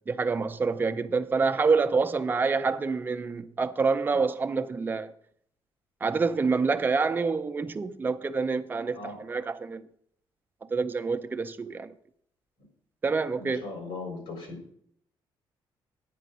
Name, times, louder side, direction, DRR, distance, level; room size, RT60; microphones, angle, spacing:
voice 1, 0.1-5.1 6.0-9.9 10.7-11.9 13.0-13.7, right 4 dB, 20° right, 0.6 m, -27 dB
voice 2, 13.4-14.5, left 3 dB, 85° left, 3.9 m, -38 dB
9.2 x 5.1 x 8.0 m
cardioid pair, 130°, 9 cm